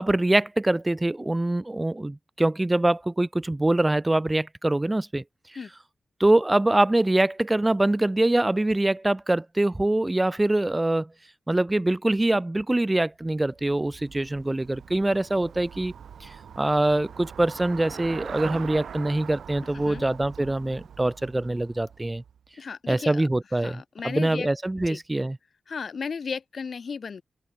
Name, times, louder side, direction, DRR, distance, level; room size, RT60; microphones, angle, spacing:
voice 1, 0.0-5.2 6.2-11.1 11.5-15.9 16.2-16.3 16.6-22.2 22.9-25.4, right 1 dB, 15° right, 1.2 m, -24 dB
Traffic noise roadway noise / Bicycle, 13.3-22.5, right 7 dB, 90° right, 3.6 m, -42 dB
voice 2, 19.7-20.0 22.6-24.5 24.9-25.0 25.7-27.2, left 5 dB, 55° left, 6.7 m, -35 dB
wide cardioid pair, 125°, 0 cm